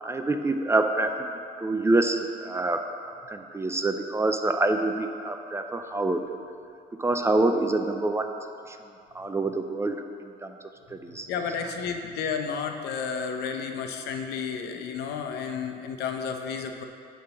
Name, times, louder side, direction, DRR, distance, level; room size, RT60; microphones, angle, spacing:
voice 1, 0.0-6.2 7.0-8.3 8.7-8.8 9.1-10.5 10.9-11.3, right 2 dB, 15° right, 6 dB, 0.5 m, -26 dB
voice 2, 11.3-16.8, left 6 dB, 75° left, 4 dB, 0.8 m, -32 dB
9.3 x 3.9 x 7.0 m, 2.5 s
cardioid pair, 110°, 17 cm